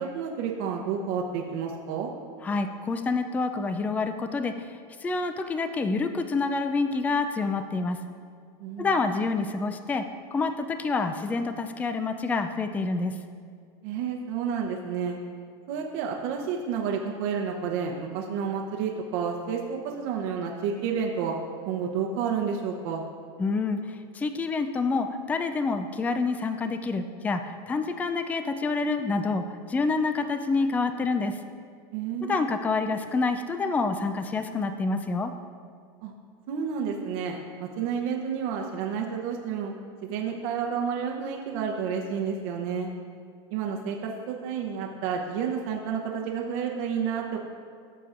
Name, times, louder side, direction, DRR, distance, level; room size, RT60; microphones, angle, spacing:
voice 1, 0.0-2.1 8.6-8.9 13.8-15.2 15.7-21.4 21.7-23.0 31.9-32.4 36.0-36.1 36.5-39.7 40.0-42.9 43.5-47.4, right 6 dB, 60° right, 0 dB, 0.8 m, -30 dB
voice 2, 2.4-8.0 8.8-13.2 23.4-31.4 32.2-35.3, left 3 dB, 10° left, 8 dB, 0.3 m, -28 dB
14.0 x 6.7 x 2.5 m, 2.1 s
supercardioid pair, 130°, 14 cm